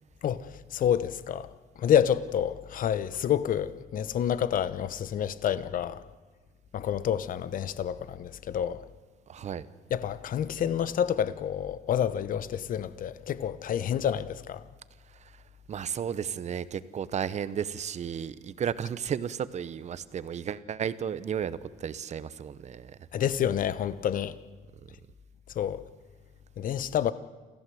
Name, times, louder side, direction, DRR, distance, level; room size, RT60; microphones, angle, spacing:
voice 1, 0.2-1.5 1.8-6.0 6.7-8.8 9.9-14.6 23.1-24.4 25.5-25.8 26.6-27.1, left 9 dB, 55° left, 1.0 m, -28 dB
voice 2, 9.3-9.7 15.1-15.4 15.7-23.0, right 8 dB, 45° right, 1.0 m, -33 dB
28.0 x 14.5 x 7.8 m
cardioid pair, 110°, 17 cm